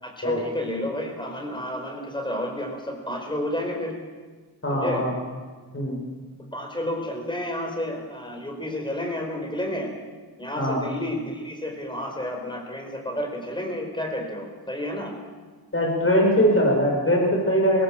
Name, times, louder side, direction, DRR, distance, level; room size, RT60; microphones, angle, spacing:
voice 1, 0.0-3.9 4.7-5.0 6.5-9.9 10.4-15.1, left 1 dB, 10° left, 2 dB, 4.7 m, -31 dB
voice 2, 4.6-5.1 5.7-6.0 10.6-10.8 15.7-17.8, equal, 35° left, 0 dB, 6.0 m, -21 dB
22.0 x 18.0 x 7.7 m, 1.4 s
wide cardioid pair, 120°, 39 cm